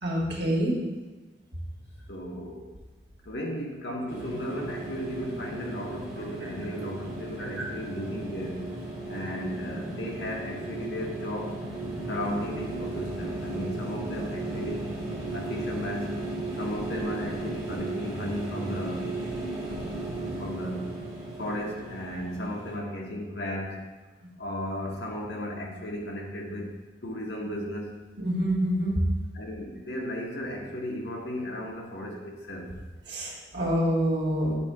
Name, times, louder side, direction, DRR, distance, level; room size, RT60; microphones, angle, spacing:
voice 1, 0.0-0.8 28.2-29.0 33.1-34.5, equal, 80° right, -3 dB, 1.6 m, -26 dB
voice 2, 2.1-2.7 3.2-8.6 9.1-11.6 12.1-14.8 15.3-16.2 16.6-19.1 19.6-20.9 21.4-23.8 24.4-26.7 27.0-27.9 29.3-32.7, equal, 75° left, 0 dB, 1.1 m, -35 dB
sound 1, 4.1-22.7, right 2 dB, 20° right, 1.6 m, -35 dB
8.1 x 2.8 x 4.7 m, 1.2 s
head